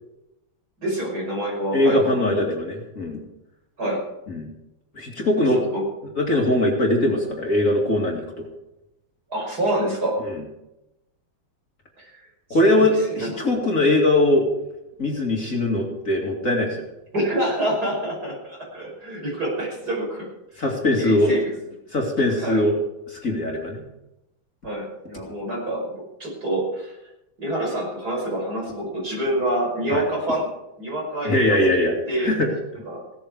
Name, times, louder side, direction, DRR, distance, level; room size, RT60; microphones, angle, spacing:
voice 1, 0.8-2.4 3.8-4.0 5.7-5.8 9.3-10.2 12.0-12.1 12.7-13.3 17.1-20.3 20.5-20.6 20.9-21.5 22.4-22.6 24.6-25.9 26.2-26.9 27.4-30.5 30.8-32.3 32.9-33.0, right 1 dB, 50° right, -1 dB, 6.1 m, -27 dB
voice 2, 1.7-3.2 4.3-4.5 4.9-5.7 6.2-8.5 10.2-10.4 12.5-14.5 15.0-16.8 20.6-21.4 21.9-22.8 23.1-23.8 29.9-30.1 31.2-32.5, left 1 dB, 40° left, 0 dB, 2.7 m, -21 dB
16.5 x 13.5 x 5.0 m, 0.91 s
omnidirectional pair, 2.2 m